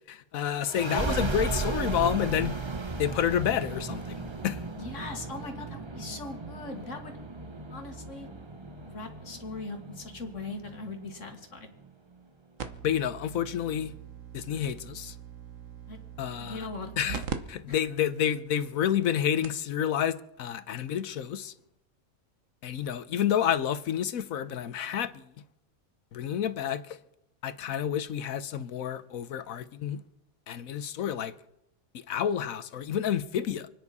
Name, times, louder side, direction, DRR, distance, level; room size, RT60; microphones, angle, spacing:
voice 1, 0.1-2.6 3.0-4.6 12.8-13.9 14.3-15.1 16.2-16.7 17.0-17.2 17.5-21.5 22.6-25.3 26.1-27.0 27.4-30.0 30.5-31.3 31.9-33.7, left 9 dB, 75° left, 1.2 m, -29 dB
sound 1, 0.6-11.9, right 3 dB, 25° right, 0.9 m, -36 dB
voice 2, 4.8-7.2 7.7-8.3 8.8-11.7 15.9-16.0 16.4-17.2 17.7-17.8, left 3 dB, 60° left, 2.2 m, -40 dB
sound 2, 12.6-17.4 17.7-17.8 18.5-18.6 19.1-19.2 19.4-19.7 20.9-21.0, right 7 dB, 65° right, 1.4 m, -41 dB
29.0 x 9.9 x 4.1 m
omnidirectional pair, 1.5 m